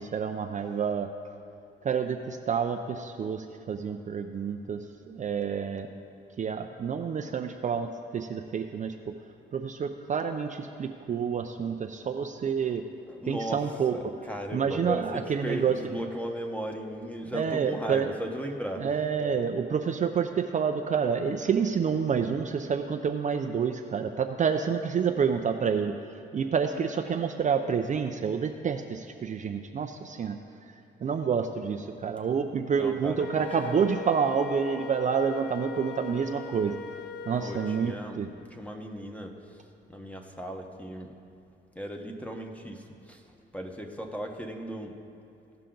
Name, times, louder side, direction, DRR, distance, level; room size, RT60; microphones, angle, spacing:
voice 1, 0.0-1.3 1.8-6.0 6.4-8.9 9.5-12.8 13.3-13.9 14.5-16.0 17.3-18.1 18.8-25.9 26.3-30.4 31.0-36.8 37.2-38.3, right 6 dB, 40° right, 5 dB, 0.5 m, -28 dB
voice 2, 13.1-13.6 13.9-18.9 32.7-33.2 37.4-38.2 38.5-39.6 39.9-41.1 41.7-43.2 43.5-45.0, equal, 5° left, 3 dB, 1.1 m, -36 dB
Wind instrument woodwind instrument, 33.2-38.0, left 6 dB, 60° left, 0.6 m, -40 dB
16.5 x 5.7 x 3.9 m, 2.7 s
cardioid pair, 90°, 20 cm